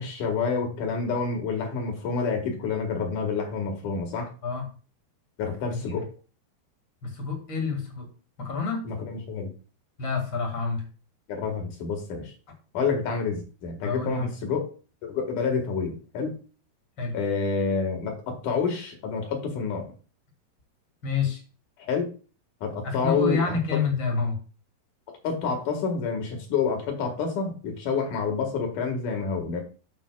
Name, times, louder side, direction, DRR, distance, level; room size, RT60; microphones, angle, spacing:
voice 1, 0.0-4.3 5.4-6.1 8.8-9.5 11.3-12.3 12.7-14.7 15.0-16.4 17.1-19.9 21.8-22.1 22.6-23.8 25.2-29.6, left 5 dB, 55° left, 4 dB, 2.9 m, -28 dB
voice 2, 5.7-6.0 7.0-8.1 8.4-8.8 10.0-10.8 13.8-14.3 17.0-17.2 21.0-21.4 22.8-24.4, left 5 dB, 40° left, 2 dB, 2.1 m, -28 dB
14.0 x 5.4 x 2.3 m, 0.36 s
omnidirectional pair, 4.6 m